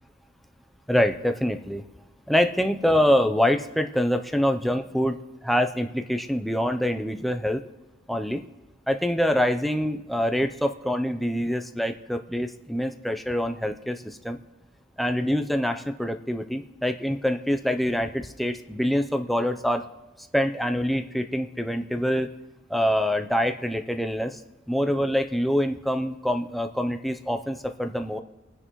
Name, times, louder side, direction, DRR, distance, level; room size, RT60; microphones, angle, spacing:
voice 1, 0.9-1.8 2.3-5.2 5.4-7.6 8.1-8.4 8.9-14.4 15.0-19.9 20.3-22.3 22.7-24.4 24.7-28.2, equal, ahead, 6 dB, 0.6 m, -25 dB
26.5 x 9.9 x 3.1 m, 1.2 s
head